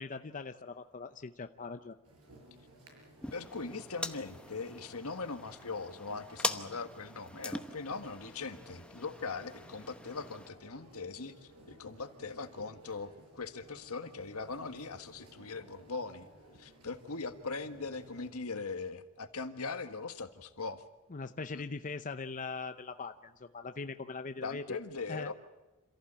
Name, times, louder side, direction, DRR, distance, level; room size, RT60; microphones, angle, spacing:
voice 1, 0.0-2.0 21.1-24.8 25.1-25.3, left 4 dB, 35° left, 8 dB, 0.7 m, -41 dB
sound 1, 2.0-18.3, right 1 dB, 80° right, 6.7 m, -58 dB
sound 2, 3.2-10.5, left 1 dB, 5° left, 0.9 m, -42 dB
voice 2, 3.3-16.3 16.6-20.8 21.5-21.7 24.4-25.3, left 4 dB, 70° left, 9 dB, 1.6 m, -40 dB
27.5 x 15.0 x 8.8 m, 1.1 s
head